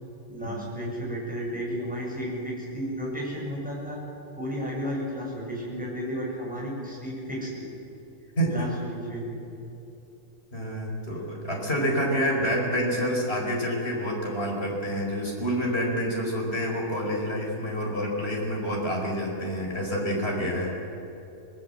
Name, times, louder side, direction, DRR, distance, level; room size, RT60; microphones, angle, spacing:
voice 1, 0.3-4.0 4.4-7.7 8.5-9.3, equal, 5° right, -4 dB, 7.4 m, -33 dB
voice 2, 8.4-8.7 10.5-20.7, equal, 40° left, -1 dB, 5.2 m, -28 dB
25.5 x 19.5 x 7.8 m, 3.0 s
omnidirectional pair, 1.6 m